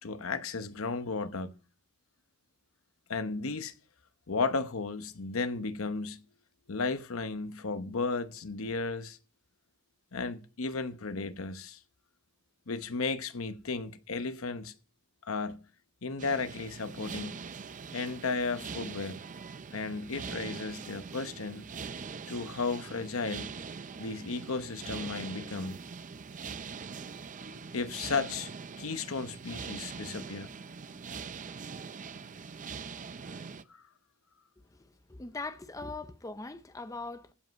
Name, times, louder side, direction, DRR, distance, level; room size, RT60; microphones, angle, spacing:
voice 1, 0.0-1.5 3.1-3.7 4.3-6.2 6.7-9.2 10.1-11.8 12.7-14.7 15.2-15.6 16.0-17.4 17.9-19.2 19.7-21.6 22.3-23.5 24.0-25.8 27.7-28.5 28.8-30.5 33.7-33.8, left 4 dB, 70° left, 0.9 m, -34 dB
sound 1, 16.2-33.6, right 5 dB, 35° right, 0.5 m, -43 dB
voice 2, 35.1-37.3, left 3 dB, 15° left, 0.5 m, -40 dB
15.5 x 5.5 x 5.2 m
head